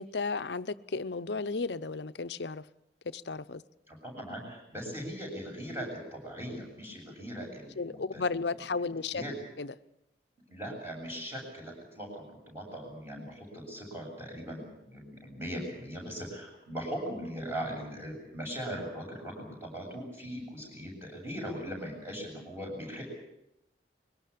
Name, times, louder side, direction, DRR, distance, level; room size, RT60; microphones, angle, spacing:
voice 1, 0.0-2.7 3.0-3.6 7.8-9.2 9.6-9.7, left 4 dB, 70° left, 13 dB, 0.8 m, -34 dB
voice 2, 3.9-8.3 8.8-9.3 10.5-23.0, equal, 15° right, 0 dB, 7.8 m, -40 dB
22.5 x 18.5 x 8.5 m, 0.82 s
head